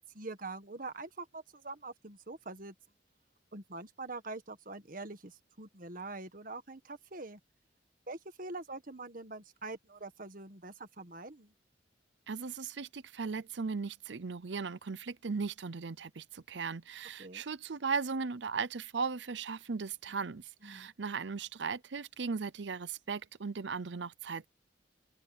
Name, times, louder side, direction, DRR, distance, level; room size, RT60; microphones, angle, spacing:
voice 1, 0.1-2.7 3.5-7.4 8.1-11.5 17.2-17.4 20.6-20.9, right 3 dB, 45° right, 1.6 m, -44 dB
voice 2, 12.3-24.5, right 5 dB, 70° right, 0.7 m, -37 dB
open air
head